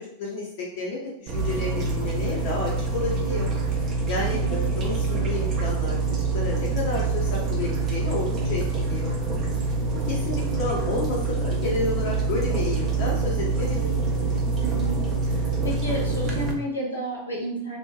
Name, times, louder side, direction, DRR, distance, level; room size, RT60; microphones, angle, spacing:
voice 1, 0.0-3.5 4.1-6.0 6.3-9.1 10.0-13.9, left 2 dB, 50° left, -3 dB, 0.5 m, -31 dB
sound 1, 1.3-16.5, right 4 dB, 30° right, 0.5 m, -26 dB
voice 2, 14.6-15.0 15.6-17.8, right 1 dB, 80° left, -4 dB, 0.9 m, -31 dB
2.7 x 2.2 x 2.4 m, 0.76 s
figure-of-eight pair, 90°, 0 cm